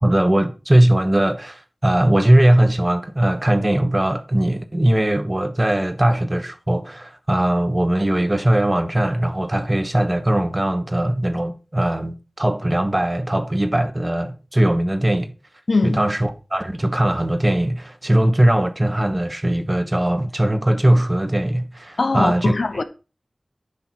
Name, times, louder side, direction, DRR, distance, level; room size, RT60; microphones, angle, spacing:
voice 1, 0.0-15.3 15.8-22.5, right 1 dB, 30° right, 1.3 m, -19 dB
voice 2, 15.7-16.0 22.0-22.8, left 3 dB, 85° left, 0.9 m, -21 dB
9.8 x 5.8 x 4.6 m
wide cardioid pair, 50°, 0 cm